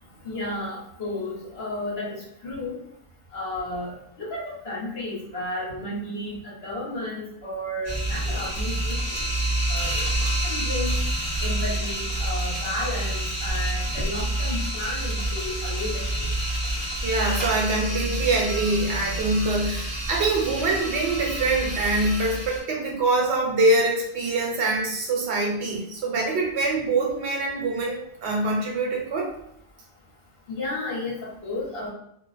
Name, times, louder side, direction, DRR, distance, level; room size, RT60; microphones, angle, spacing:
voice 1, 0.2-2.8 3.3-9.2 9.7-11.0 11.4-16.3 30.5-31.9, left 1 dB, 65° left, -5 dB, 1.1 m, -33 dB
sound 1, 7.8-22.6, right 1 dB, 20° left, 0.8 m, -28 dB
voice 2, 17.0-29.3, right 2 dB, 80° right, -1 dB, 0.9 m, -24 dB
2.4 x 2.2 x 2.4 m, 0.73 s
omnidirectional pair, 1.1 m